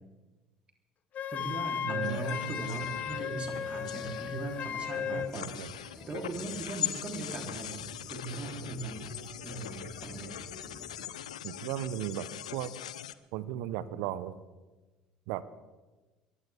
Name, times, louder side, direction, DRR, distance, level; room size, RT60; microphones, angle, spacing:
Wind instrument woodwind instrument, 1.1-5.3, left 8 dB, 45° left, 0.8 m, -35 dB
voice 1, 1.3-7.8 8.1-10.3, right 3 dB, 30° right, 2 dB, 3.5 m, -39 dB
voice 2, 1.8-2.2 5.1-5.7 11.4-12.3 12.5-12.7 13.3-14.3 15.3-15.4, right 12 dB, 65° right, 16 dB, 0.9 m, -36 dB
sound 1, 2.0-13.1, left 11 dB, 80° left, 0.5 m, -41 dB
sound 2, 2.5-11.1, left 1 dB, ahead, 5.0 m, -51 dB
22.5 x 15.5 x 3.6 m, 1.2 s
figure-of-eight pair, 60°, 4 cm